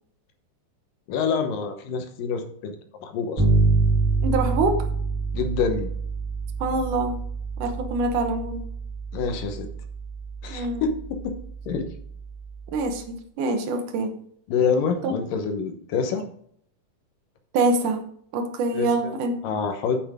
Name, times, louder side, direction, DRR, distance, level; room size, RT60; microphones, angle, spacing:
voice 1, 1.1-2.8 3.0-3.4 5.3-5.9 9.1-9.7 10.4-11.3 11.7-11.9 14.5-16.2 18.7-19.1 19.4-20.0, left 5 dB, 85° left, 6 dB, 2.7 m, -26 dB
Bass guitar, 3.4-13.0, right 4 dB, 35° right, 2.7 m, -27 dB
voice 2, 4.2-4.8 6.6-7.2 7.6-8.6 10.5-10.9 12.7-14.1 15.0-15.1 17.5-18.0 18.3-19.4, right 2 dB, 75° right, 6 dB, 2.5 m, -25 dB
8.6 x 8.0 x 3.6 m, 0.64 s
omnidirectional pair, 3.8 m